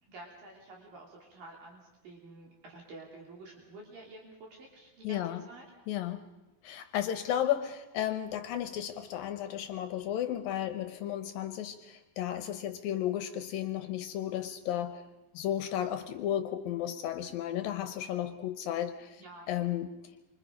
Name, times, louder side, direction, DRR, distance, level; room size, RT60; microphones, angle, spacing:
voice 1, 0.0-5.7 19.2-19.5, right 2 dB, 65° right, -1 dB, 4.8 m, -50 dB
voice 2, 5.0-5.4 5.9-6.2 6.6-15.0 15.3-19.2 19.5-19.9, left 11 dB, 75° left, 9 dB, 2.5 m, -33 dB
28.0 x 25.5 x 5.3 m, 1.0 s
omnidirectional pair, 4.4 m